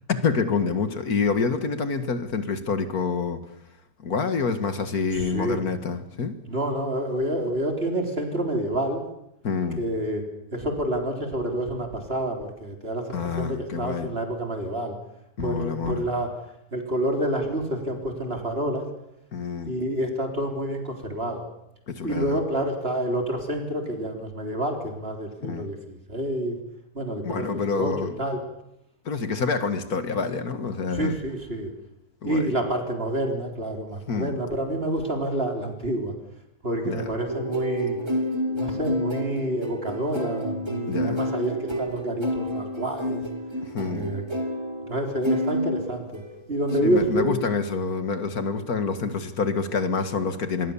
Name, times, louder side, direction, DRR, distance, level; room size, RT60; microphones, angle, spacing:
voice 1, 0.1-3.4 4.0-6.3 9.4-9.8 13.1-14.1 15.4-16.0 19.3-19.7 21.9-22.4 25.4-25.7 27.3-28.2 29.1-31.2 32.2-32.5 34.1-34.3 36.8-37.1 40.9-41.2 43.6-44.1 46.8-50.7, left 5 dB, 75° left, 9 dB, 2.2 m, -27 dB
voice 2, 5.1-5.6 6.5-9.0 9.8-14.9 15.4-16.3 16.7-18.9 19.6-21.4 22.0-26.6 26.9-28.4 30.9-31.7 32.2-36.1 36.6-38.0 38.5-43.2 43.8-44.2 44.9-46.2 46.5-47.3, right 1 dB, 40° right, 3 dB, 4.0 m, -28 dB
sound 1, 37.3-46.4 46.7-47.2, equal, 15° right, 2.6 m, -29 dB
26.5 x 21.0 x 7.2 m, 0.82 s
omnidirectional pair, 1.6 m